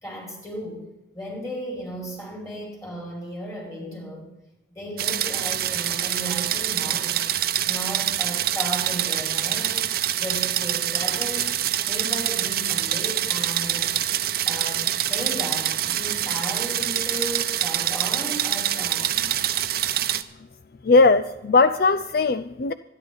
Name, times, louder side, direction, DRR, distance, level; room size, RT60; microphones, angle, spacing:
voice 1, 0.0-4.3 4.7-7.3 7.7-9.8 10.2-14.0 14.5-19.2, equal, 20° left, 5.5 m, -35 dB
sound 1, 5.0-20.2, right 11 dB, 60° right, 0.7 m, -25 dB
voice 2, 20.8-22.7, left 3 dB, 60° left, 0.5 m, -18 dB
25.5 x 10.5 x 4.0 m
head